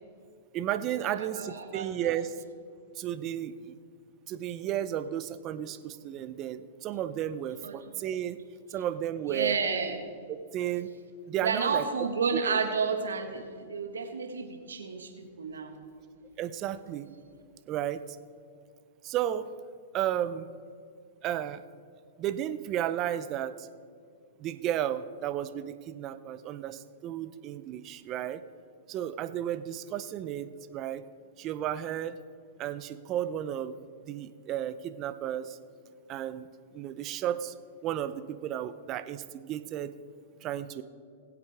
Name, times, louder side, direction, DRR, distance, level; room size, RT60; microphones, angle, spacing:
voice 1, 0.5-2.3 3.0-3.7 4.3-8.4 8.7-9.6 10.3-10.9 11.3-11.9 12.3-12.5 16.4-17.1 17.7-18.2 19.0-19.5 19.9-20.5 21.2-21.6 22.2-23.7 24.4-28.4 28.9-31.0 31.4-32.2 32.6-33.8 34.1-35.6 36.1-37.5 37.8-39.9 40.4-40.8, right 11 dB, 35° right, 12 dB, 0.7 m, -33 dB
voice 2, 1.2-2.1 7.6-7.8 9.3-10.0 11.4-15.1 15.4-15.8, right 5 dB, 90° right, 5 dB, 1.7 m, -31 dB
21.0 x 8.3 x 3.6 m, 2.2 s
hypercardioid pair, 125°, 0 cm